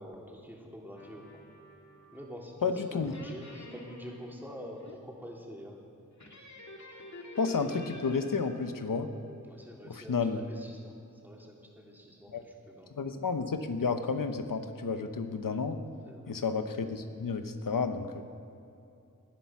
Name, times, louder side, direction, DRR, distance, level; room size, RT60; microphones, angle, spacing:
voice 1, 0.0-1.4 2.1-5.8 9.4-10.9 11.2-12.9 16.1-16.4, equal, 5° right, -2 dB, 3.5 m, -46 dB
sound 1, 1.0-2.4 3.0-5.0 6.2-9.7, left 2 dB, 60° left, 2.1 m, -49 dB
voice 2, 2.6-3.1 7.4-9.1 9.9-10.4 12.3-12.4 13.0-15.8 16.3-18.2, left 5 dB, 85° left, 7 dB, 1.0 m, -31 dB
19.5 x 10.0 x 6.0 m, 2.7 s
wide cardioid pair, 50°, 32 cm